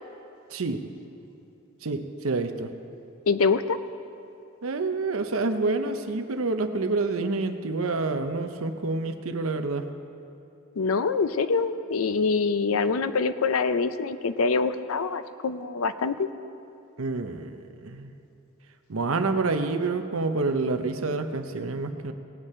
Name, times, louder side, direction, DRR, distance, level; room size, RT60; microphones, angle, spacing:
voice 1, 0.5-0.8 1.8-2.7 4.6-9.9 17.0-18.1 18.9-22.1, right 3 dB, 80° right, 7 dB, 0.8 m, -28 dB
voice 2, 3.3-3.8 10.8-16.3, left 4 dB, 85° left, 12 dB, 0.5 m, -25 dB
18.5 x 8.2 x 4.4 m, 2.9 s
head